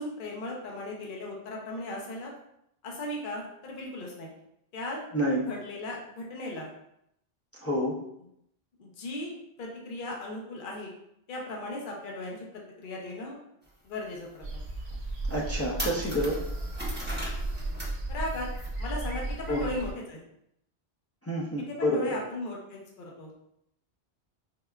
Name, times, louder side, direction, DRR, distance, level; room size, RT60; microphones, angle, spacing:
voice 1, 0.0-2.3 2.8-4.3 4.7-5.0 5.5-6.7 8.8-10.9 11.3-13.4 13.8-14.6 18.1-18.5 18.8-20.2 21.8-23.3, left 1 dB, 55° left, -1 dB, 0.8 m, -37 dB
voice 2, 5.1-5.4 7.5-8.0 15.3-16.4 19.5-19.8 21.2-22.2, equal, 25° left, -4 dB, 0.3 m, -28 dB
sound 1, 13.7-13.8 14.3-14.4 14.9-15.0 15.3-18.0 18.2-18.7, equal, 10° right, 0.8 m, -39 dB
sound 2, 14.4-19.9, right 2 dB, 90° right, 0.9 m, -34 dB
4.8 x 2.1 x 2.3 m, 0.76 s
omnidirectional pair, 1.1 m